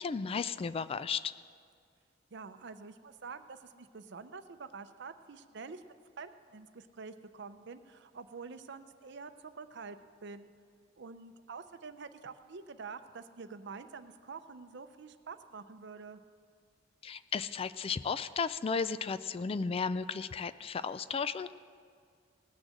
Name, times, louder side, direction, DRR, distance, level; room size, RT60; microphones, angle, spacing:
voice 1, 0.0-1.3 17.0-21.5, left 5 dB, 30° left, 14 dB, 0.3 m, -34 dB
voice 2, 2.3-5.8 6.2-10.5 11.0-16.2, right 4 dB, 65° right, 10 dB, 0.6 m, -47 dB
18.5 x 6.3 x 7.4 m, 2.1 s
head